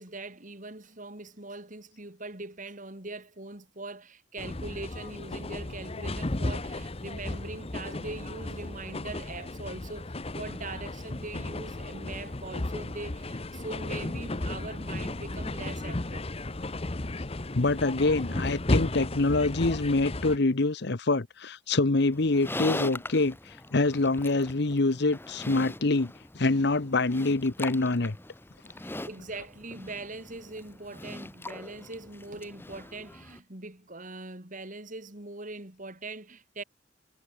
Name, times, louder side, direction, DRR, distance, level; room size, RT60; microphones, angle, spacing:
voice 1, 0.0-16.3 28.7-36.6, right 2 dB, 40° right, 3.3 m, -41 dB
sound 1, 4.4-20.4, left 2 dB, 30° left, 1.0 m, -34 dB
voice 2, 17.5-28.2, left 2 dB, 60° left, 1.0 m, -25 dB
Livestock farm animals working animals, 22.1-33.4, left 1 dB, 10° left, 1.5 m, -41 dB
head